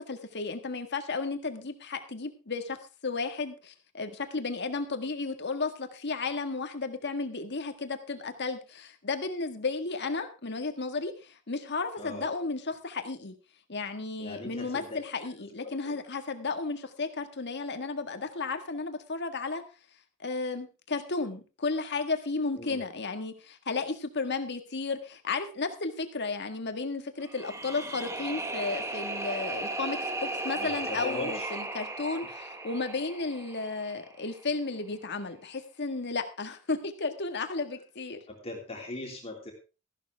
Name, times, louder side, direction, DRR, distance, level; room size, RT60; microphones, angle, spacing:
voice 1, 0.1-2.8 3.0-13.3 13.7-19.6 20.2-38.2, left 3 dB, 55° left, 7 dB, 1.7 m, -33 dB
voice 2, 12.0-12.3 14.2-15.0 15.6-16.0 22.5-22.9 30.5-31.5 38.3-39.5, left 1 dB, 30° left, 1 dB, 3.1 m, -39 dB
sound 1, 27.2-34.3, right 2 dB, 15° right, 1.2 m, -36 dB
14.5 x 11.5 x 3.5 m, 0.31 s
head